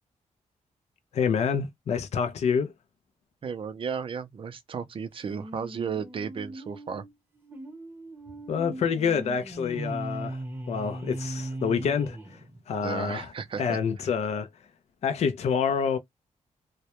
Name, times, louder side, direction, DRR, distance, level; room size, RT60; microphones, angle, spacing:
voice 1, 1.1-2.7 8.5-10.4 10.7-12.4 12.7-13.3 13.6-14.5 15.0-16.0, left 6 dB, 55° left, 0.4 m, -27 dB
voice 2, 3.4-7.0 12.8-13.8, right 6 dB, 45° right, 0.4 m, -34 dB
sound 1, 5.3-12.9, right 1 dB, 15° right, 0.7 m, -38 dB
2.2 x 2.0 x 2.8 m
wide cardioid pair, 125°, 13 cm